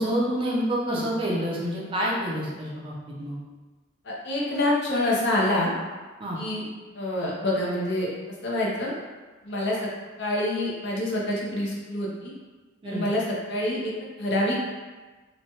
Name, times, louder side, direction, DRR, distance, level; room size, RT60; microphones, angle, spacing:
voice 1, 0.0-2.9 3.2-3.4 6.2-6.4 12.8-13.1, equal, 25° right, -4 dB, 0.4 m, -27 dB
voice 2, 4.1-5.7 6.4-6.6 7.0-8.1 8.4-8.9 9.4-9.8 10.2-12.3 12.8-13.2 13.5-13.8 14.2-14.6, left 1 dB, 55° left, -4 dB, 0.6 m, -26 dB
3.0 x 2.2 x 2.7 m, 1.3 s
head